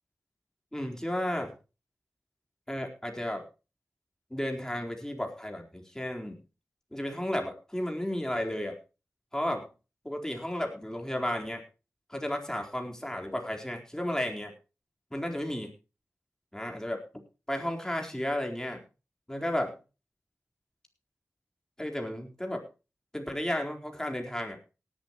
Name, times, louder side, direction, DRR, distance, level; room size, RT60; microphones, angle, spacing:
voice 1, 0.7-1.5 2.7-3.4 4.3-6.4 6.9-8.8 9.3-9.7 10.0-11.6 12.1-14.5 15.1-15.7 16.5-17.0 17.5-18.8 19.3-19.8 21.8-22.6 23.1-24.6, left 1 dB, 10° left, 2 dB, 4.2 m, -33 dB
18.5 x 11.5 x 3.1 m, 0.31 s
cardioid pair, 40°, 5 cm